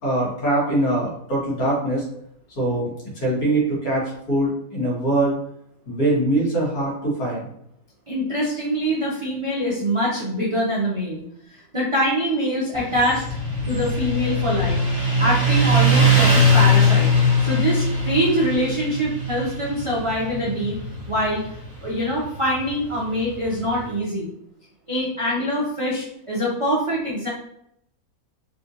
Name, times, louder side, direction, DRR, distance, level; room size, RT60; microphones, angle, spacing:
voice 1, 0.0-2.0 2.6-5.3 5.9-7.5, right 1 dB, 70° left, -5 dB, 1.7 m, -23 dB
voice 2, 8.1-11.2 11.5-13.2 13.7-14.8 15.2-17.1 17.4-20.8 21.1-21.4 21.8-24.3 24.9-27.3, equal, 55° right, -6 dB, 0.3 m, -24 dB
Motorcycle, 12.7-23.9, left 1 dB, 35° right, 1.3 m, -21 dB
3.6 x 2.4 x 2.6 m, 0.74 s
omnidirectional pair, 1.6 m